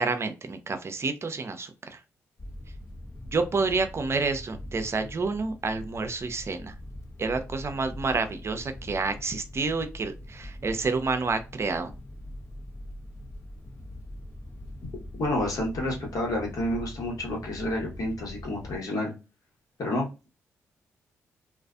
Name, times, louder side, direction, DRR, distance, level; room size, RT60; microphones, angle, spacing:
voice 1, 0.0-2.0 3.3-6.7 7.2-11.9, right 4 dB, 40° right, 8 dB, 0.6 m, -29 dB
sound 1, 2.4-18.8, left 1 dB, 45° left, 1.0 m, -42 dB
voice 2, 15.2-19.1 19.8-20.3, left 1 dB, 60° left, -1 dB, 1.2 m, -29 dB
2.4 x 2.4 x 2.3 m, 0.29 s
hypercardioid pair, 45°, 7 cm